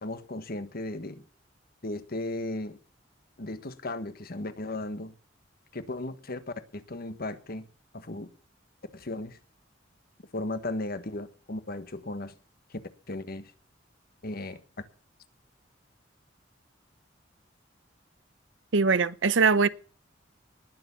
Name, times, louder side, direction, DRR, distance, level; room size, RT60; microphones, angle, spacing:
voice 1, 0.0-1.2 1.8-2.8 3.4-5.1 5.7-6.4 6.7-7.7 7.9-8.3 8.9-9.4 10.3-12.3 12.7-12.8 13.1-13.5 14.2-14.6, left 2 dB, 55° left, 1.4 m, -36 dB
voice 2, 18.7-19.7, right 4 dB, 85° right, 0.7 m, -22 dB
19.5 x 7.0 x 7.1 m
head